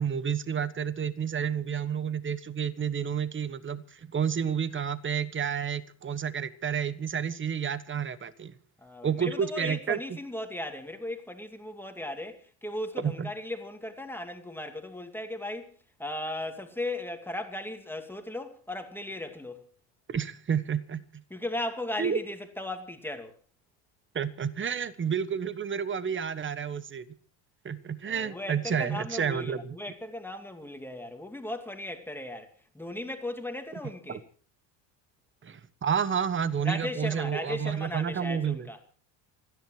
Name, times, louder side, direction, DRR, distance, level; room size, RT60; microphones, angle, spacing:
voice 1, 0.0-8.5 9.0-10.0 13.0-13.3 20.1-21.2 22.0-22.2 24.1-27.0 27.6-29.8 34.1-34.2 35.4-38.7, right 7 dB, 25° right, 1.3 m, -30 dB
voice 2, 8.8-19.7 21.3-23.4 28.0-34.2 36.6-38.8, left 1 dB, 5° left, 2.5 m, -37 dB
28.5 x 10.5 x 4.6 m
cardioid pair, 120°, 49 cm